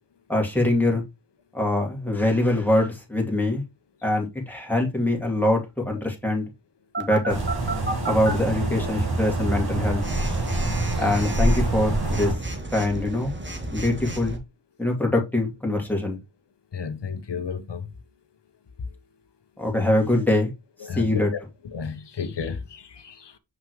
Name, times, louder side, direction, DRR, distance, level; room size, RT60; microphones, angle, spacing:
voice 1, 0.3-1.0 1.5-3.6 4.0-6.5 7.0-7.4 8.1-10.0 11.0-12.3 12.7-13.3 13.7-14.4 14.8-16.2 19.6-20.5 21.0-21.3, left 1 dB, 5° left, 2.3 m, -23 dB
Telephone, 6.9-8.3 10.0-14.4, right 2 dB, 25° right, 1.4 m, -32 dB
sound 1, 7.3-12.3, right 2 dB, 55° right, 2.6 m, -26 dB
voice 2, 16.7-17.9 20.8-21.4 21.7-23.4, left 6 dB, 65° left, 1.0 m, -33 dB
6.2 x 5.8 x 3.1 m
wide cardioid pair, 70°, 46 cm